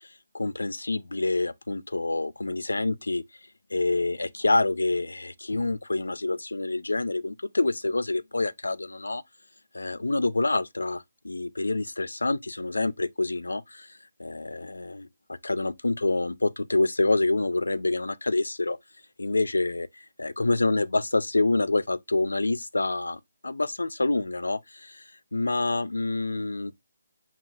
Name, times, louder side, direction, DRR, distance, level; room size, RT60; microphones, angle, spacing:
voice 1, 0.3-3.2 3.7-9.2 9.7-13.9 14.2-18.8 19.2-19.9 20.2-25.0 25.3-26.7, left 2 dB, 80° left, 0.4 m, -27 dB
5.3 x 2.4 x 3.5 m
figure-of-eight pair, 145°, 0 cm